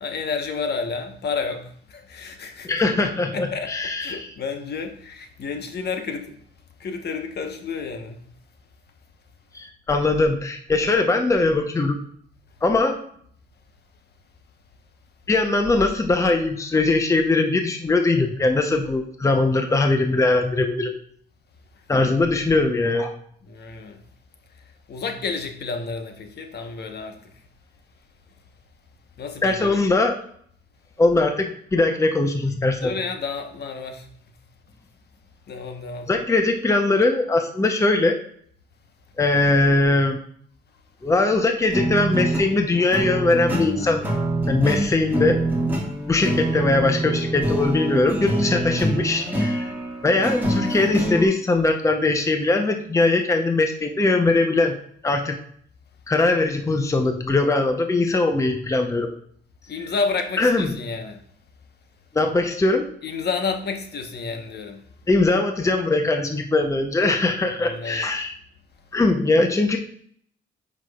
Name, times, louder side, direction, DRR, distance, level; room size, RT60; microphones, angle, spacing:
voice 1, 0.0-2.7 3.3-3.7 4.0-6.4 6.8-8.2 23.5-24.0 24.9-27.4 29.2-29.8 32.8-34.3 35.5-36.1 59.7-61.2 63.0-64.8 67.6-68.1, left 4 dB, 55° left, 1.1 m, -30 dB
voice 2, 2.6-4.3 9.5-12.0 12.6-13.1 15.3-20.9 21.9-23.1 29.4-30.2 31.0-32.9 36.1-38.2 39.2-40.2 41.0-44.0 44.5-45.4 46.1-49.7 50.0-54.8 55.0-55.4 56.1-59.1 60.4-60.7 62.1-62.9 65.1-68.3 68.9-69.8, left 2 dB, 15° left, 0.7 m, -21 dB
sound 1, 41.7-51.2, right 1 dB, 10° right, 2.0 m, -25 dB
7.9 x 5.9 x 2.3 m
cardioid pair, 90°, 20 cm